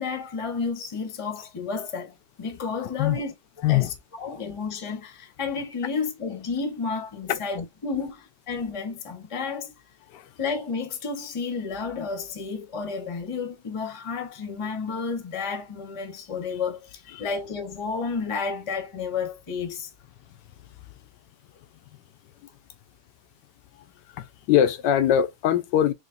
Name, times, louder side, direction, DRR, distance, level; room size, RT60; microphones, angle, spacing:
voice 1, 0.0-3.3 3.7-3.9 4.2-9.7 10.4-19.9, left 5 dB, 25° left, 0.8 m, -31 dB
voice 2, 24.2-25.9, left 10 dB, 85° left, 1.3 m, -22 dB
4.0 x 3.2 x 2.5 m
omnidirectional pair, 1.8 m